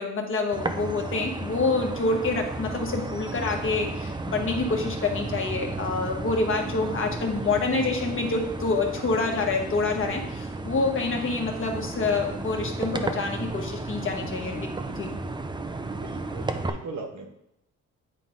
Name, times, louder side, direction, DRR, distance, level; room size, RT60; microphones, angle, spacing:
voice 1, 0.0-15.1, left 3 dB, 45° left, 1 dB, 1.4 m, -27 dB
sound 1, 0.5-16.7, right 2 dB, 15° right, 0.5 m, -33 dB
voice 2, 6.9-7.3 15.8-17.3, right 3 dB, 70° right, 3 dB, 1.2 m, -40 dB
9.0 x 3.9 x 3.7 m, 0.82 s
cardioid pair, 90°, 30 cm